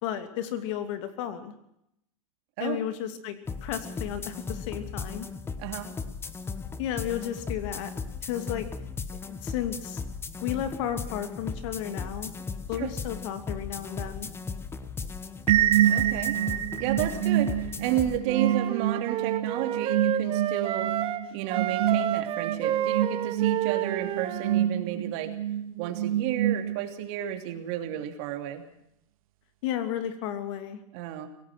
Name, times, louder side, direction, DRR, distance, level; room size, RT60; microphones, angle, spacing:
voice 1, 0.0-1.5 2.6-5.3 6.8-7.9 8.2-8.7 9.4-10.0 10.4-12.3 12.7-14.3 29.6-30.8, left 10 dB, 55° left, 9 dB, 2.8 m, -33 dB
sound 1, 3.5-18.2, left 5 dB, 15° left, 1.1 m, -37 dB
voice 2, 5.6-5.9 12.7-12.9 15.9-16.3 16.8-20.9 21.3-25.4 25.8-28.6 30.9-31.3, right 11 dB, 50° right, 6 dB, 2.9 m, -32 dB
sound 2, 15.5-27.1, right 11 dB, 70° right, 2.0 m, -27 dB
Wind instrument woodwind instrument, 18.3-21.2 21.5-24.7, right 10 dB, 30° right, 1.3 m, -30 dB
24.0 x 17.5 x 6.1 m, 0.79 s
supercardioid pair, 140°, 19 cm